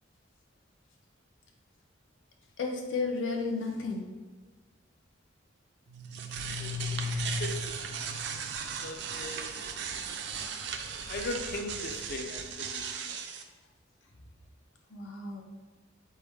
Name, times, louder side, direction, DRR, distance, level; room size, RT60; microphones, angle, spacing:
voice 1, 2.6-4.1 14.9-15.4, left 4 dB, 80° left, 1 dB, 0.7 m, -33 dB
sound 1, 5.9-13.4, right 3 dB, 60° right, 0.4 m, -36 dB
voice 2, 6.3-7.0 7.4-8.4 8.8-9.6 11.1-13.2, left 2 dB, 50° left, 5 dB, 0.4 m, -40 dB
4.3 x 3.4 x 3.4 m, 1.4 s
head